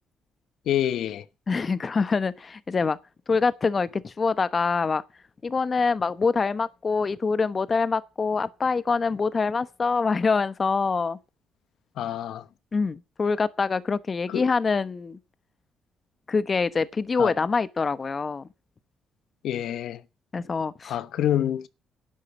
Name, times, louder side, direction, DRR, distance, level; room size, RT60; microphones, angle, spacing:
voice 1, 0.7-1.2 12.0-12.4 14.3-14.4 17.2-17.3 19.4-20.0 20.8-21.7, left 11 dB, 75° left, 0.9 m, -27 dB
voice 2, 1.5-3.0 3.3-5.0 5.4-11.2 12.7-15.2 16.3-18.5 20.3-21.0, left 4 dB, 35° left, 1.0 m, -25 dB
11.5 x 8.2 x 7.2 m
cardioid pair, 90°, 0 cm